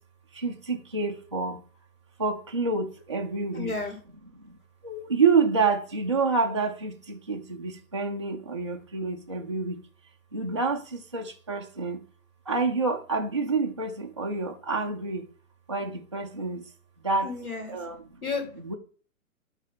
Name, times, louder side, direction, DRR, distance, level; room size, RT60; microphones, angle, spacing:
voice 1, 0.3-1.6 2.2-3.7 4.4-4.6 4.8-9.8 10.3-12.0 12.5-15.3 15.7-16.6 17.0-17.3 17.7-18.0 18.6-18.8, right 4 dB, 20° right, 0.4 m, -28 dB
voice 2, 3.5-4.0 17.2-17.7 18.2-18.4, left 4 dB, 75° left, 2.3 m, -32 dB
9.2 x 3.3 x 5.3 m
figure-of-eight pair, 125°, 43 cm